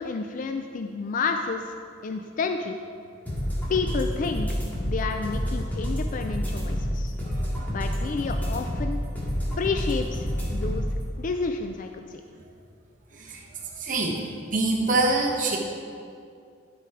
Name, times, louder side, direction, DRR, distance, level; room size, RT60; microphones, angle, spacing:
voice 1, 0.0-1.7 2.0-2.8 3.7-4.5 4.8-7.1 7.7-9.0 9.6-10.9 11.2-12.2, left 4 dB, 40° left, 6 dB, 0.3 m, -30 dB
sound 1, 3.3-11.0, equal, 10° left, 1.8 m, -28 dB
voice 2, 13.8-14.2 14.5-15.6, right 2 dB, 40° right, -3 dB, 1.1 m, -23 dB
11.5 x 4.7 x 4.8 m, 2.4 s
head